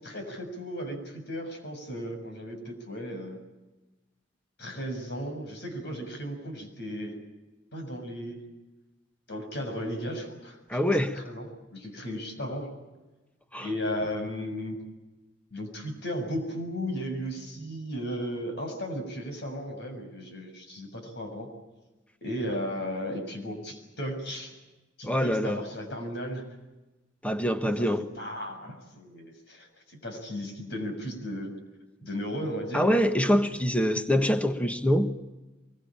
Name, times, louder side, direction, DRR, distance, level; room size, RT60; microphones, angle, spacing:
voice 1, 0.0-3.4 4.6-7.2 7.7-8.4 9.3-11.0 11.2-12.7 13.6-14.8 15.5-21.5 22.2-24.6 25.0-26.4 27.8-27.9 28.1-31.5 32.0-32.9, equal, 65° left, 6.7 m, -35 dB
voice 2, 10.7-11.2 13.5-13.7 25.0-25.6 27.2-28.1 32.7-35.1, equal, 5° left, 1.4 m, -25 dB
23.5 x 22.5 x 8.9 m
head